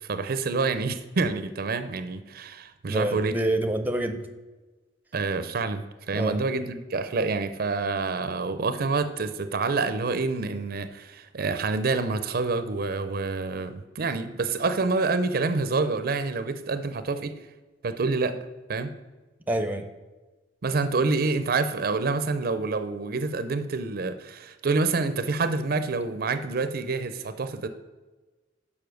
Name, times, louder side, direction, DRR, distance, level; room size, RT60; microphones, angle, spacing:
voice 1, 0.0-3.4 5.1-17.4 17.8-18.4 18.7-18.9 20.6-27.7, right 3 dB, 55° right, 11 dB, 0.5 m, -27 dB
voice 2, 2.9-4.2 6.1-6.4 19.5-19.9, right 1 dB, 10° right, 7 dB, 0.6 m, -27 dB
6.9 x 5.5 x 6.3 m, 1.2 s
head